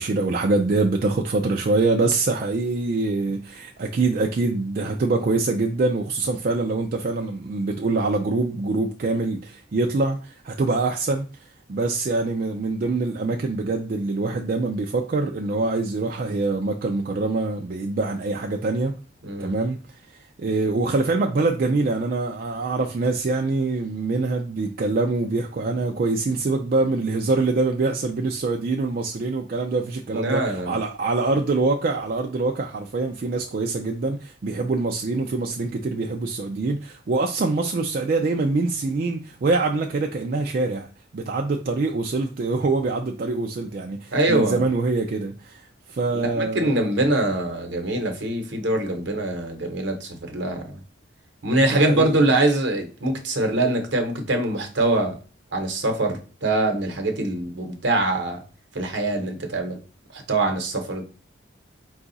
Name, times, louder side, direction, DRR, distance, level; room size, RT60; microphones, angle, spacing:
voice 1, 0.0-18.9 19.4-46.8 51.6-52.2, right 3 dB, 50° right, 0.4 m, -24 dB
voice 2, 19.2-19.5 30.1-30.8 44.1-44.6 46.1-50.8 51.4-55.2 55.5-58.4 58.7-59.8 60.1-61.0, right 2 dB, 70° right, 0.9 m, -23 dB
4.7 x 2.4 x 3.9 m
head